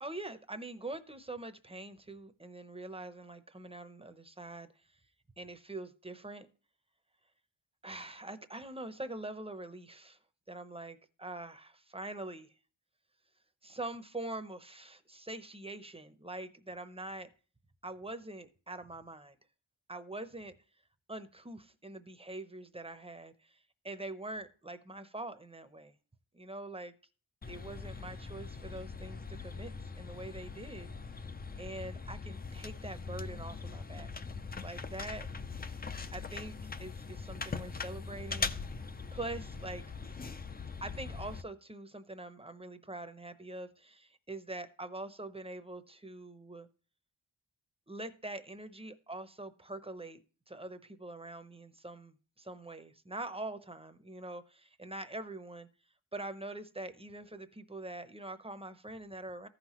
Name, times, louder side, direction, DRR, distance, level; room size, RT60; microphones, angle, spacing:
voice 1, 0.0-4.7 5.4-6.5 7.8-10.2 10.5-12.5 13.6-17.3 17.8-19.4 19.9-20.5 21.1-26.0 26.3-26.9 27.5-30.9 31.6-34.1 34.6-35.3 36.1-36.5 36.8-38.5 39.1-40.3 40.8-46.7 47.9-50.2 50.5-55.7 56.1-59.5, right 2 dB, 15° right, 0.7 m, -44 dB
sound 1, 27.4-41.4, left 4 dB, 20° left, 0.4 m, -41 dB
15.0 x 5.8 x 3.0 m
wide cardioid pair, 125°, 46 cm